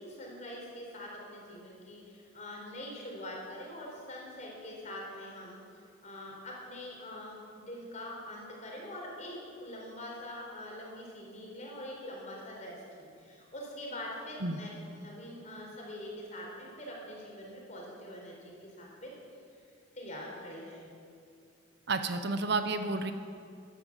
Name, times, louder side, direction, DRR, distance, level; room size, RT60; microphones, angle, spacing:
voice 1, 0.0-19.1 19.9-20.9, left 1 dB, 35° left, -2 dB, 4.2 m, -44 dB
voice 2, 21.9-23.1, right 3 dB, 55° right, 8 dB, 0.9 m, -31 dB
13.5 x 12.5 x 7.4 m, 2.3 s
head